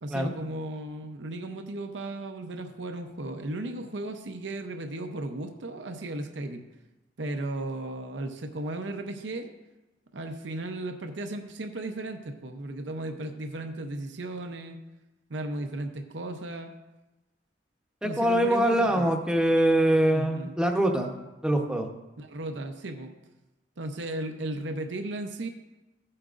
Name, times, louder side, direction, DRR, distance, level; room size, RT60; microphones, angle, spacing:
voice 1, 0.0-6.6 7.2-9.5 10.1-14.8 15.3-16.7 18.0-19.1 20.1-20.5 22.2-23.1 23.8-25.5, right 2 dB, 70° right, 6 dB, 0.7 m, -35 dB
voice 2, 18.0-21.1 21.4-21.9, right 1 dB, 5° right, 2 dB, 0.9 m, -23 dB
15.0 x 8.6 x 2.5 m, 1.0 s
head